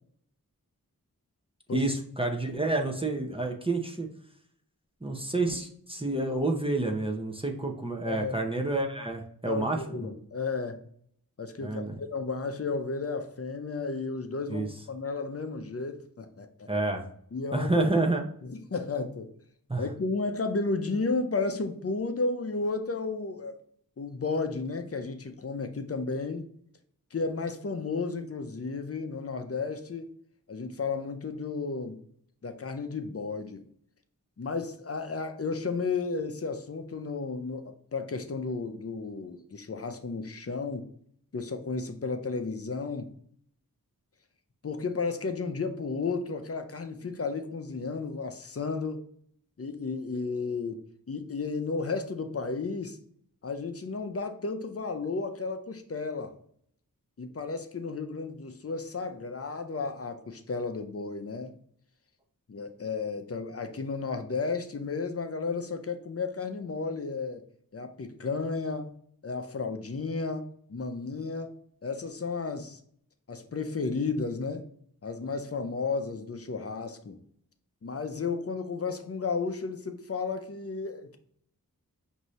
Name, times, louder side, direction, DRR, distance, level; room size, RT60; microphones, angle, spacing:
voice 1, 1.7-4.1 5.0-10.1 11.6-11.9 14.5-14.7 16.7-17.1 17.5-18.2 19.7-19.9, right 2 dB, 15° right, 1 dB, 0.7 m, -29 dB
voice 2, 8.0-8.4 9.4-10.8 11.4-16.7 17.3-17.9 18.4-19.3 19.8-23.6 24.0-26.5 27.1-30.1 30.5-32.0 32.4-33.6 34.4-40.9 41.3-43.1 44.6-49.0 49.6-50.8 51.1-53.0 53.4-56.3 57.2-61.5 62.5-67.4 67.7-69.0 69.2-71.5 71.8-72.8 73.3-74.7 75.0-77.2 77.8-81.2, left 4 dB, 40° left, 7 dB, 0.6 m, -33 dB
5.2 x 2.7 x 3.1 m, 0.63 s
wide cardioid pair, 45°, 35 cm